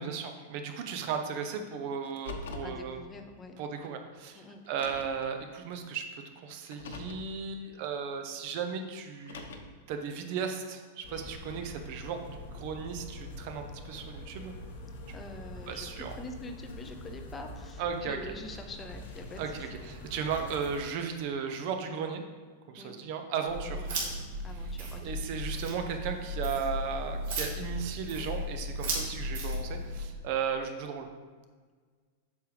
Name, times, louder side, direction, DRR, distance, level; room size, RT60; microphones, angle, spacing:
voice 1, 0.0-3.0 3.6-14.5 15.7-16.1 17.8-18.2 19.4-22.2 22.7-23.9 25.0-31.1, right 6 dB, 40° right, 6 dB, 0.6 m, -36 dB
Car, 2.0-2.8 3.8-3.9 4.6-5.3 6.6-7.3 9.1-9.8, left 4 dB, 90° left, 0.9 m, -43 dB
voice 2, 2.6-3.6 4.3-4.6 15.1-15.9 16.2-19.4 19.7-19.8 22.8-22.9 23.6-25.2, left 2 dB, 10° left, 5 dB, 0.5 m, -45 dB
sound 1, 11.0-20.8, left 1 dB, 70° left, 1.3 m, -45 dB
sound 2, 23.5-30.0, equal, 65° right, 2.4 m, -35 dB
8.4 x 6.4 x 3.2 m, 1.5 s
supercardioid pair, 175°, 0 cm